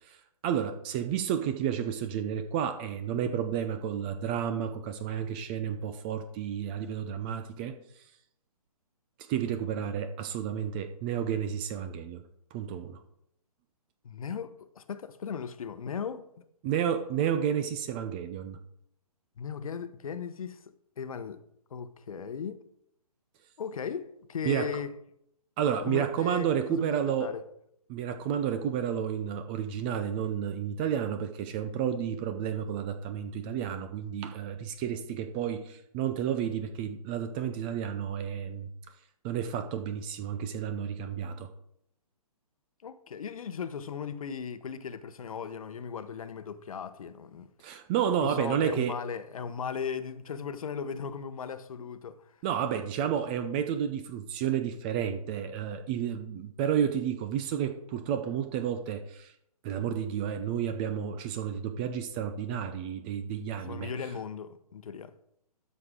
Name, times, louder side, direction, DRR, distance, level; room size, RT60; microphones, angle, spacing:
voice 1, 0.4-7.8 9.3-12.2 12.5-13.0 16.6-18.6 24.4-24.7 25.6-27.3 27.9-38.7 39.2-41.5 47.6-49.0 52.4-59.3 59.6-63.9, right 9 dB, 15° right, 0.4 m, -31 dB
voice 2, 14.0-16.2 19.4-20.6 21.0-21.4 21.7-22.6 23.6-24.9 25.9-27.4 42.8-47.5 48.2-52.3 63.6-65.1, left 6 dB, 60° left, 0.9 m, -37 dB
12.5 x 6.6 x 3.7 m
figure-of-eight pair, 140°, 20 cm